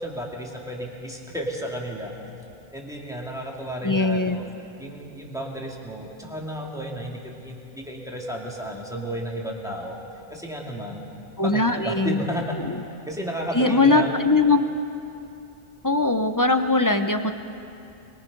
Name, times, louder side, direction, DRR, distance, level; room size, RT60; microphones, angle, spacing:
voice 1, 0.0-2.3 2.7-4.5 4.8-10.0 10.3-11.1 11.4-12.5 13.1-14.2, equal, 5° right, -2 dB, 2.5 m, -33 dB
voice 2, 3.8-4.4 11.4-12.3 12.7-12.8 13.5-14.6 15.8-17.3, left 3 dB, 20° left, 8 dB, 0.7 m, -20 dB
24.0 x 22.0 x 5.4 m, 2.7 s
omnidirectional pair, 1.1 m